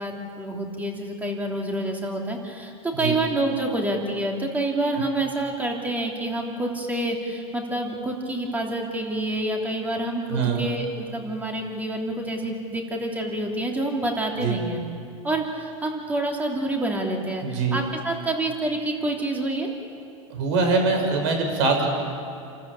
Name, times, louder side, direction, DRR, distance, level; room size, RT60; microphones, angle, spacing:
voice 1, 0.0-14.8 15.2-17.4 17.7-19.7, right 1 dB, 10° right, 1 dB, 3.0 m, -27 dB
voice 2, 10.3-10.6 14.4-14.6 17.4-17.8 20.3-21.9, right 4 dB, 55° right, 3 dB, 6.0 m, -23 dB
28.5 x 13.5 x 8.6 m, 2.5 s
supercardioid pair, 140°, 17 cm